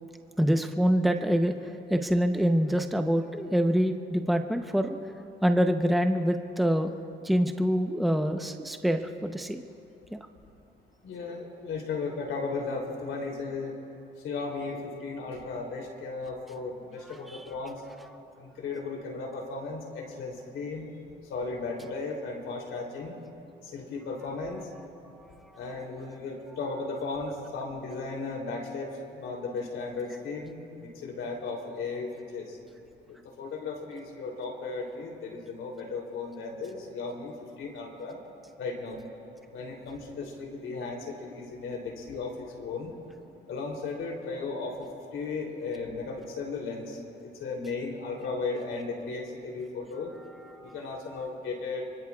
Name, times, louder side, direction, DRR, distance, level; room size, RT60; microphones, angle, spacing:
voice 1, 0.4-5.0 5.4-6.9 7.2-9.6 10.1-10.2 17.3-17.4 25.4-25.6 50.5-50.7, equal, ahead, 6 dB, 0.8 m, -26 dB
voice 2, 11.0-13.7 14.2-17.8 18.4-20.9 21.3-23.1 23.6-24.7 25.5-32.6 33.1-38.2 38.6-39.0 39.5-42.9 43.5-50.1 50.6-51.9, left 4 dB, 80° left, -1 dB, 3.2 m, -36 dB
24.5 x 24.0 x 2.4 m, 2.7 s
cardioid pair, 90°, 20 cm